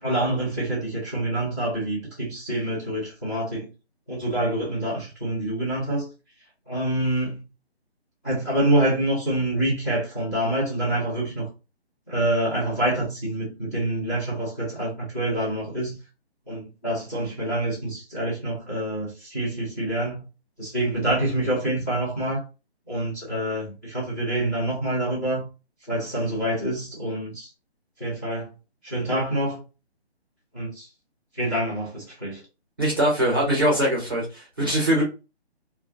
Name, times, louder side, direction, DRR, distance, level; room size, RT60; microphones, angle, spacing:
voice 1, 0.0-3.7 4.1-6.1 6.7-7.4 8.2-11.5 12.1-16.0 16.5-20.2 20.6-22.4 22.9-25.5 25.9-27.5 28.0-28.5 28.8-29.6 30.5-30.9 31.3-32.4, right 1 dB, 15° left, 0.7 m, -26 dB
voice 2, 32.8-35.0, equal, 20° right, 0.6 m, -22 dB
2.3 x 2.1 x 2.5 m
hypercardioid pair, 170°, 33 cm